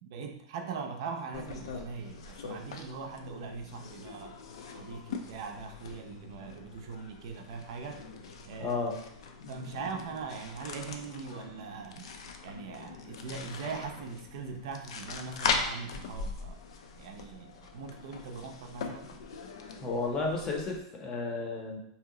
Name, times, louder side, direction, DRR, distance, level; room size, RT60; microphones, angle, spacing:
voice 1, 0.0-4.4 4.7-8.0 8.5-8.8 9.5-12.1 12.4-16.6 17.0-19.1, right 5 dB, 65° right, 4 dB, 0.5 m, -41 dB
sound 1, 1.3-20.8, left 5 dB, 85° left, 0.4 m, -41 dB
voice 2, 8.6-9.0 19.8-21.8, left 3 dB, 25° left, 0 dB, 0.6 m, -32 dB
2.7 x 2.0 x 3.7 m, 0.75 s
supercardioid pair, 150°, 3 cm